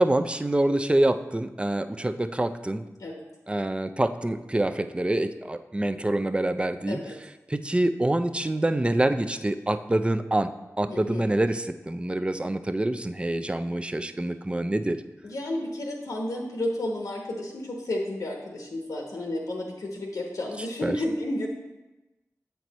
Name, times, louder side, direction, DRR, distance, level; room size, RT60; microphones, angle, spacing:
voice 1, 0.0-2.9 3.5-7.0 7.5-10.5 10.8-15.0 20.8-21.0, right 1 dB, 20° right, 10 dB, 0.4 m, -26 dB
voice 2, 10.9-11.2 15.2-21.5, left 1 dB, 90° left, 0 dB, 1.0 m, -32 dB
7.8 x 4.6 x 4.1 m, 1.1 s
cardioid pair, 50°, 6 cm